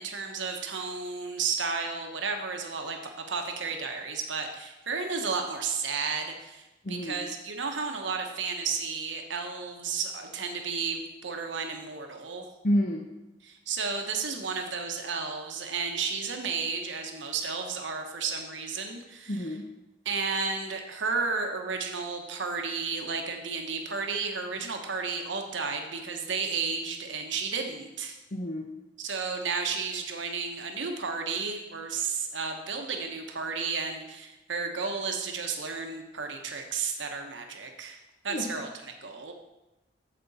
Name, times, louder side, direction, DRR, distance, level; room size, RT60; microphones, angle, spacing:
voice 1, 0.0-12.5 13.5-19.4 20.0-28.2 29.0-38.0 38.2-39.3, right 5 dB, 85° right, 4 dB, 1.1 m, -33 dB
voice 2, 6.8-7.2 12.6-13.1 19.3-19.7 28.3-28.7 38.3-38.5, equal, 45° left, 1 dB, 0.8 m, -29 dB
8.7 x 7.7 x 4.2 m, 0.99 s
head